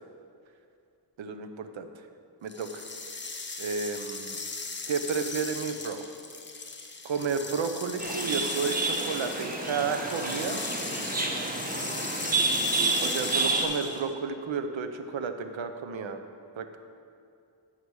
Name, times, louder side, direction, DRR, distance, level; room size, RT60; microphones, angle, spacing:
voice 1, 1.2-1.9 2.4-2.8 3.6-4.4 4.9-6.0 7.0-10.6 13.0-16.2 16.6-16.8, right 5 dB, 85° right, 7 dB, 0.7 m, -32 dB
sound 1, 2.5-14.1, left 3 dB, 25° left, 0.8 m, -38 dB
sound 2, 8.0-13.6, right 3 dB, 20° right, 0.9 m, -29 dB
9.6 x 5.7 x 4.7 m, 2.5 s
wide cardioid pair, 70°, 45 cm